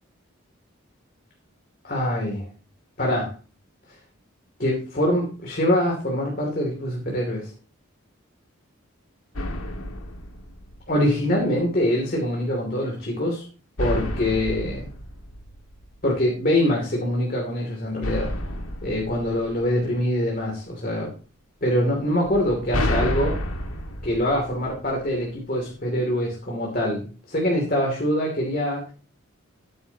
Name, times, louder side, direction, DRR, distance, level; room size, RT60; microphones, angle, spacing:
voice 1, 1.8-2.5 3.0-3.3 4.6-7.5 10.9-13.4 13.8-14.8 16.0-18.3 18.8-21.1 21.6-23.4 24.0-28.8, left 1 dB, 40° left, -1 dB, 2.8 m, -24 dB
sound 1, 9.3-11.2 13.8-16.2 18.0-20.3 22.2-25.3, left 1 dB, 90° left, 1.9 m, -30 dB
13.5 x 9.6 x 2.9 m, 0.37 s
head